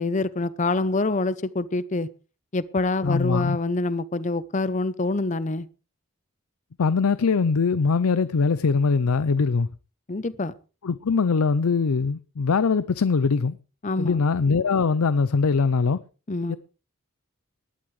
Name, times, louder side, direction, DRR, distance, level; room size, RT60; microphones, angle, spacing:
voice 1, 0.0-2.1 2.5-5.7 10.1-10.5 13.8-14.2 16.3-16.6, left 2 dB, 35° left, 0.6 m, -26 dB
voice 2, 3.0-3.6 6.8-9.7 10.8-13.6 14.0-16.0 16.5-16.6, left 4 dB, 90° left, 0.5 m, -22 dB
19.0 x 12.0 x 3.2 m
head